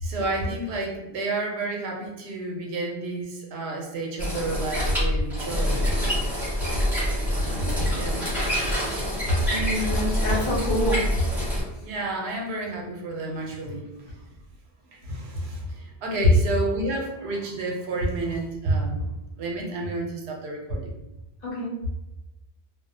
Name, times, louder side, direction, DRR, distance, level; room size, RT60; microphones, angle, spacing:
voice 1, 0.0-5.9 7.3-8.3 11.8-14.3 14.9-19.1 19.3-20.9, right 2 dB, 90° right, 1 dB, 0.8 m, -31 dB
sound 1, 4.2-11.6, equal, ahead, 0.7 m, -26 dB
voice 2, 9.5-11.0 16.2-16.3 21.4-21.7, left 2 dB, 65° left, -8 dB, 0.8 m, -24 dB
2.3 x 2.0 x 2.6 m, 0.96 s
omnidirectional pair, 1.1 m